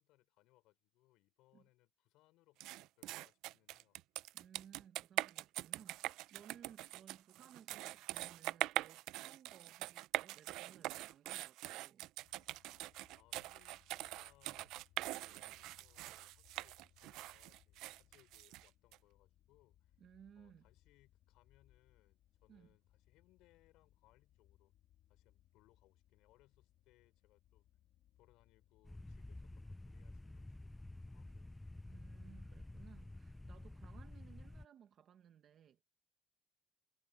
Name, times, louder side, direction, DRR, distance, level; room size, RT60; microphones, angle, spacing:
voice 1, 0.0-4.0 13.2-20.0 20.4-24.7 25.1-27.7 28.2-31.5, left 18 dB, 85° left, 5.8 m, -72 dB
sound 1, 2.6-19.0, right 17 dB, 80° right, 0.5 m, -43 dB
voice 2, 4.3-12.1 20.0-20.7 22.5-22.8 31.9-35.8, right 9 dB, 45° right, 1.1 m, -61 dB
sound 2, 12.2-29.6, left 12 dB, 65° left, 2.2 m, -71 dB
sound 3, 28.8-34.7, left 2 dB, 10° left, 0.4 m, -51 dB
cardioid pair, 145°, 0 cm